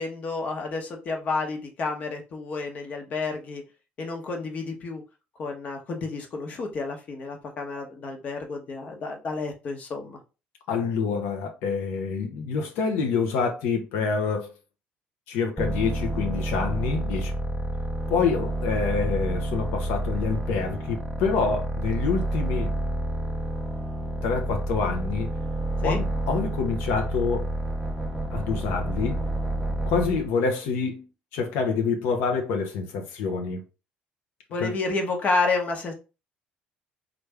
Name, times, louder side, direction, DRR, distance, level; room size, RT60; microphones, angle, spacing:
voice 1, 0.0-3.6 4.0-5.0 5.4-10.2 25.8-26.0 34.5-35.9, left 3 dB, 45° left, 1.0 m, -30 dB
voice 2, 10.7-14.5 15.3-17.3 18.1-22.7 24.2-25.3 25.8-27.5 28.3-29.2 29.8-31.1 31.3-33.6 34.6-34.7, left 5 dB, 85° left, 0.7 m, -27 dB
sound 1, 15.6-30.3, right 1 dB, 5° right, 0.6 m, -29 dB
3.3 x 2.5 x 3.3 m
cardioid pair, 115°, 3 cm